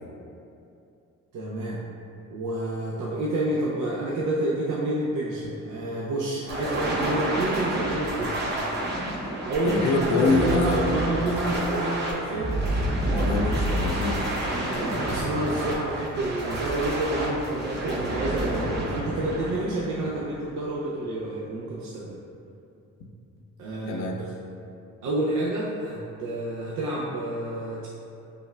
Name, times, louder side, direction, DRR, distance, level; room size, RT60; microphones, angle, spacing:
voice 1, 1.3-1.8 2.3-8.4 9.4-12.5 14.5-22.2 23.6-24.0 25.0-27.9, right 1 dB, 75° right, -5 dB, 0.5 m, -29 dB
sound 1, 6.5-20.4, right 1 dB, 35° right, 0.7 m, -29 dB
voice 2, 9.6-10.8 13.1-14.2 23.9-24.2, left 3 dB, 70° left, 2 dB, 0.5 m, -25 dB
5.1 x 2.1 x 2.2 m, 2.6 s
cardioid pair, 90°, 30 cm